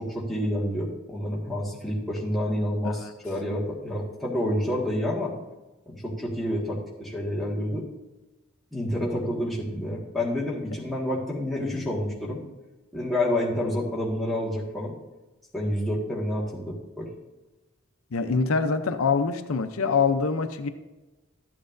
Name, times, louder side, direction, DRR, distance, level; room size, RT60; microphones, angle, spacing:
voice 1, 0.0-5.3 5.9-7.8 8.7-12.4 12.9-14.9 15.5-17.1, left 1 dB, ahead, -6 dB, 1.6 m, -28 dB
voice 2, 18.1-20.7, left 5 dB, 80° left, 9 dB, 0.6 m, -24 dB
12.5 x 8.6 x 2.6 m, 1.1 s
head